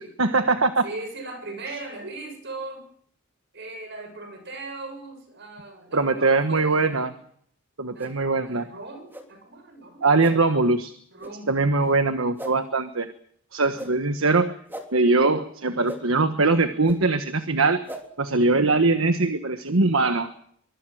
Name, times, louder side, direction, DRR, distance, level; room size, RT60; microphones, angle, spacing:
voice 1, 0.2-0.8 5.9-7.1 7.8-8.7 10.0-10.9 11.5-13.1 13.5-14.6 14.9-17.8 18.2-20.3, right 3 dB, 70° right, 9 dB, 1.4 m, -21 dB
voice 2, 0.8-2.9 3.5-7.2 7.9-10.2 11.1-11.6 13.6-14.0, right 2 dB, 55° right, 6 dB, 7.2 m, -39 dB
sound 1, 8.0-8.1 9.1-9.2 10.2-10.3 11.2-11.3 12.4-12.5 13.7-13.9 14.7-14.9 15.8-16.0 16.8-17.0 17.9-18.0, right 1 dB, 10° right, 3.3 m, -36 dB
24.0 x 22.5 x 6.3 m, 0.65 s
head